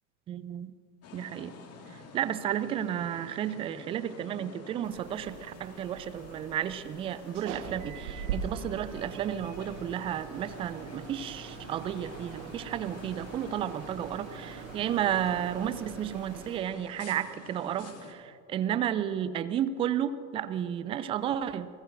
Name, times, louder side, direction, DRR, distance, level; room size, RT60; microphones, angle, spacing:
voice 1, 0.3-0.7 1.1-1.5 1.9-21.7, right 10 dB, 15° right, 14 dB, 0.3 m, -32 dB
sound 1, 1.0-18.1, left 4 dB, 30° left, 2.0 m, -49 dB
sound 2, 4.8-16.6, right 7 dB, 60° right, 1.4 m, -43 dB
30.0 x 18.5 x 2.6 m, 2.4 s
figure-of-eight pair, 80°, 46 cm